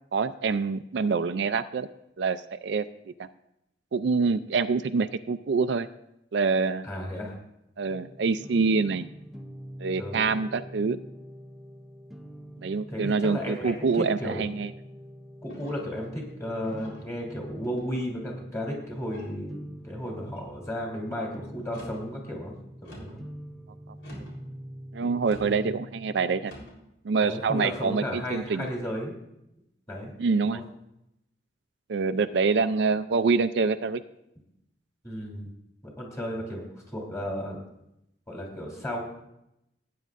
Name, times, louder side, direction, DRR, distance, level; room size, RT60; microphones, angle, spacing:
voice 1, 0.1-1.9 2.2-2.8 3.2-3.3 3.9-5.9 6.3-6.9 7.8-9.1 9.8-11.0 12.6-14.7 24.9-26.5 27.0-28.7 30.2-30.6 31.9-34.0, right 4 dB, 65° right, 10 dB, 0.4 m, -26 dB
voice 2, 6.8-7.4 10.0-10.2 12.9-14.5 15.4-22.5 22.8-23.2 25.4-25.7 27.2-29.1 29.9-30.1 30.5-30.6 35.0-35.5 36.0-37.6 38.3-39.0, equal, 15° left, -1 dB, 2.9 m, -34 dB
sound 1, 7.9-26.5, equal, ahead, 0.6 m, -45 dB
sound 2, 15.5-16.0 16.6-17.1 17.7-18.2 19.0-19.4 20.0-20.5 21.6-22.1 22.8-23.2 24.0-24.4 25.2-25.6 26.4-26.8, equal, 85° left, 3.6 m, -47 dB
17.5 x 9.3 x 2.5 m, 0.83 s
head